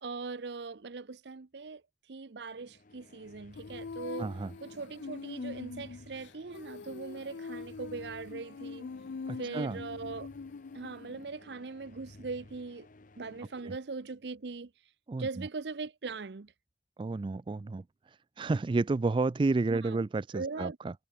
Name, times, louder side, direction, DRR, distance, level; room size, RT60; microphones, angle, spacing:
voice 1, 0.0-1.8 2.1-4.3 4.6-8.9 9.4-10.3 10.7-12.9 13.2-14.7 15.2-16.5 19.7-20.0 20.3-20.8, right 4 dB, 70° right, 0.7 m, -40 dB
sound 1, 2.5-14.3, left 2 dB, 50° left, 1.0 m, -55 dB
Female singing, 3.6-11.2, left 4 dB, 85° left, 0.5 m, -43 dB
voice 2, 4.2-4.5 9.3-9.8 13.6-13.7 15.1-15.3 17.0-17.8 18.4-20.9, right 3 dB, 30° right, 0.3 m, -30 dB
head